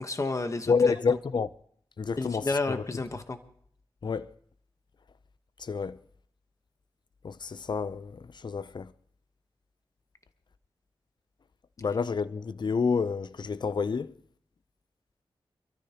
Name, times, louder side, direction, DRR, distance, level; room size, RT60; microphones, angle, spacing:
voice 1, 0.0-0.9 2.2-3.4, left 3 dB, 35° left, 1.1 m, -31 dB
voice 2, 0.7-1.5 2.0-2.8 4.0-4.3 5.6-6.0 7.2-8.9 11.8-14.1, left 5 dB, 50° left, 0.5 m, -29 dB
26.5 x 13.5 x 2.9 m
wide cardioid pair, 100°, 10 cm